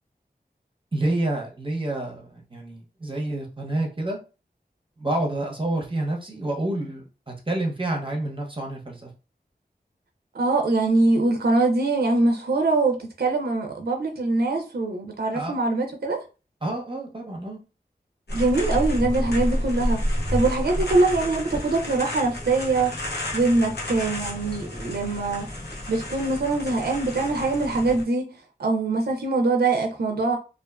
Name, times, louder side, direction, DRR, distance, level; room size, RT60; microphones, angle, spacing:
voice 1, 0.9-4.2 5.0-9.1 15.3-15.5 16.6-17.6 20.8-20.9, right 1 dB, 30° right, 0.7 m, -28 dB
voice 2, 10.3-16.2 18.3-22.9 23.3-25.5 25.9-30.4, right 3 dB, 65° right, 0.4 m, -23 dB
sound 1, 18.3-28.0, equal, 75° left, 0.8 m, -30 dB
2.4 x 2.2 x 2.3 m
wide cardioid pair, 55°, 17 cm